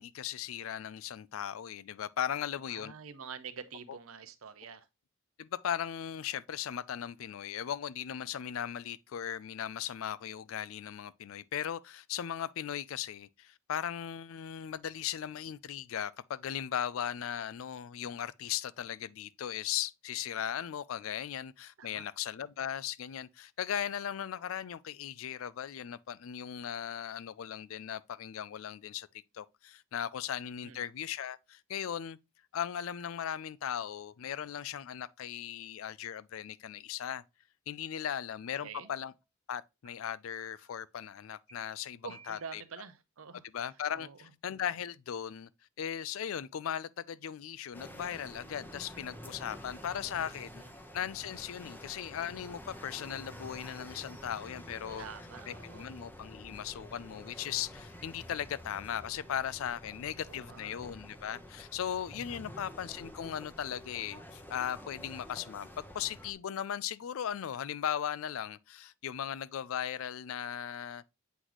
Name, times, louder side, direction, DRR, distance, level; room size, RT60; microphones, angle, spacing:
voice 1, 0.0-2.9 5.4-29.1 29.3-32.2 32.5-37.2 37.7-39.1 39.5-42.6 43.5-45.5 45.8-50.6 50.9-55.1 55.5-71.0, left 9 dB, 70° left, 0.4 m, -38 dB
voice 2, 2.7-4.9 21.8-22.1 30.6-30.8 38.6-38.9 42.0-43.5 43.9-44.3 50.0-50.7 55.0-55.9 60.2-60.8 62.3-62.6, right 6 dB, 80° right, 0.7 m, -47 dB
sound 1, 38.8-39.2 39.9-40.0 40.4-40.9 41.5-41.6 42.1-42.7, right 5 dB, 35° right, 1.3 m, -59 dB
sound 2, 47.7-66.3, equal, 10° left, 0.8 m, -49 dB
8.1 x 3.9 x 3.0 m
head